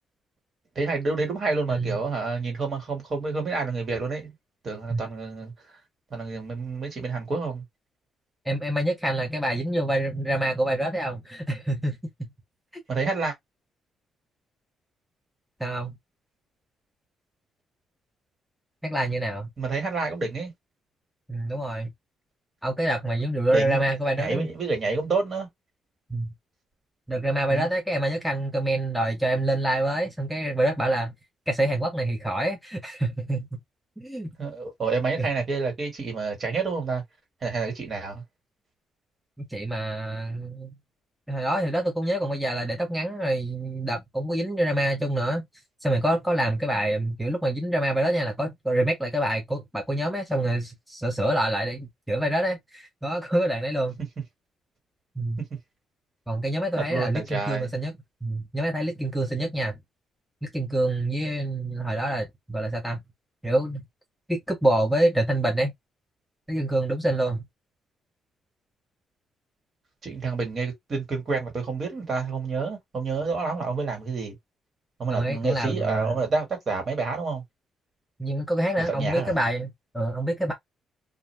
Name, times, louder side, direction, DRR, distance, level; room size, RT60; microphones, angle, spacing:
voice 1, 0.8-4.3 4.6-5.5 6.1-7.6 12.9-13.3 19.6-20.5 23.5-23.9 24.2-25.5 27.5-27.7 34.4-37.0 37.4-38.2 55.5-55.6 56.8-57.7 70.0-74.4 75.0-77.4 78.9-79.4, right 4 dB, 45° right, 1.7 m, -28 dB
voice 2, 1.7-2.0 4.9-5.0 8.4-12.0 15.6-16.0 18.8-19.5 21.3-21.9 22.6-24.5 26.1-26.3 27.1-31.1 31.5-33.6 34.0-34.3 35.2-35.3 39.4-40.7 41.3-45.4 45.8-54.0 55.2-55.4 56.3-57.9 58.2-59.8 60.4-63.0 63.4-63.8 64.3-65.7 66.5-67.5 75.1-76.2 78.2-80.5, right 1 dB, ahead, 0.8 m, -26 dB
2.5 x 2.2 x 3.2 m
cardioid pair, 90°, 0 cm